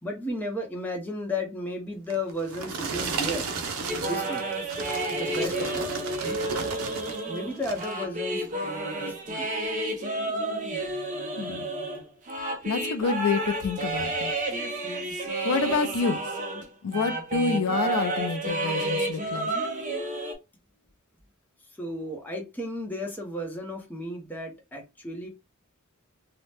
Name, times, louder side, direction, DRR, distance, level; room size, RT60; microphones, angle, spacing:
voice 1, 0.0-3.5 4.0-4.4 5.0-5.9 7.3-9.5 21.7-25.3, left 1 dB, 10° left, 0.6 m, -34 dB
sound 1, 2.1-7.2 7.6-8.0 8.6-8.7, right 4 dB, 80° right, 0.6 m, -34 dB
sound 2, 3.9-16.7 16.9-20.3, right 1 dB, 35° right, 0.6 m, -30 dB
voice 2, 12.6-14.3 15.4-16.2 16.8-19.5, left 5 dB, 85° left, 0.4 m, -28 dB
2.8 x 2.1 x 3.3 m
head